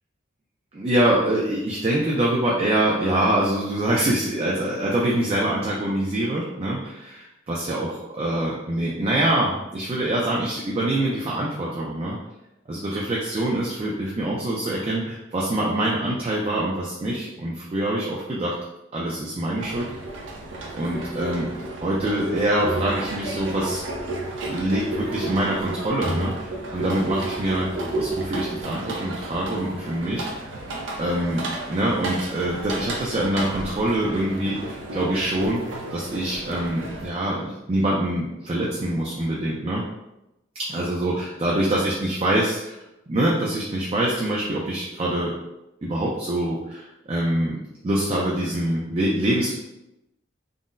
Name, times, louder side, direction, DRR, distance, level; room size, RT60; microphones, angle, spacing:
voice 1, 0.7-12.2 12.7-18.5 18.9-19.9 20.7-21.5 21.8-23.8 24.4-30.3 31.0-35.6 35.9-39.8 40.5-42.7 43.1-45.3 45.8-47.6 47.8-49.6, right 1 dB, 30° right, -4 dB, 0.4 m, -25 dB
sound 1, 19.6-37.1, right 2 dB, 85° right, 0.6 m, -32 dB
3.7 x 2.1 x 2.5 m, 0.90 s
head